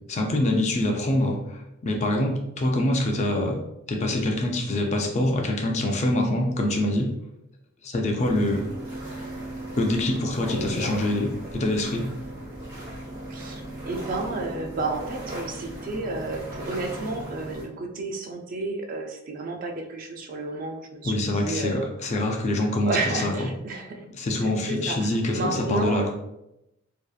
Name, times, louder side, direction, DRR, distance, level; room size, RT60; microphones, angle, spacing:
voice 1, 0.1-3.6 3.9-7.1 7.8-8.6 9.8-12.1 21.0-23.5 24.1-26.1, left 1 dB, 35° left, 2 dB, 0.3 m, -25 dB
sound 1, 8.2-17.6, right 1 dB, 85° right, 1.0 m, -37 dB
voice 2, 10.5-10.9 13.3-21.9 22.9-24.0 24.5-26.0, right 3 dB, 40° right, 2 dB, 0.3 m, -31 dB
2.6 x 2.4 x 2.3 m, 0.87 s
head